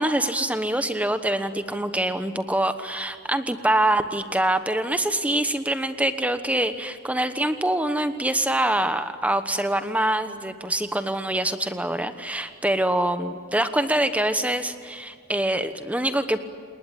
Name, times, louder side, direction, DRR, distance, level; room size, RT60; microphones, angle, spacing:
voice 1, 0.0-16.4, right 1 dB, 5° right, 10 dB, 1.1 m, -25 dB
29.0 x 19.5 x 10.0 m, 2.2 s
head